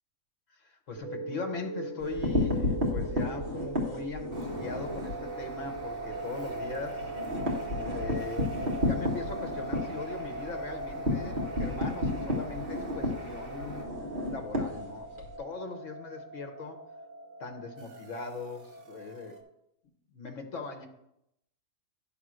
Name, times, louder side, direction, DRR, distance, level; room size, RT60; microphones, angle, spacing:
voice 1, 0.5-7.1 7.8-13.8 14.3-16.8 17.4-19.4 20.1-20.9, left 4 dB, 65° left, 4 dB, 1.4 m, -40 dB
sound 1, 1.0-19.4, right 2 dB, 65° right, 1.3 m, -40 dB
sound 2, 2.0-5.2 5.6-5.8 6.1-6.2 6.5-15.3, left 2 dB, 40° right, 1.6 m, -31 dB
Bird, 4.3-13.8, equal, 5° left, 2.7 m, -45 dB
10.0 x 3.6 x 6.2 m, 0.81 s
omnidirectional pair, 1.4 m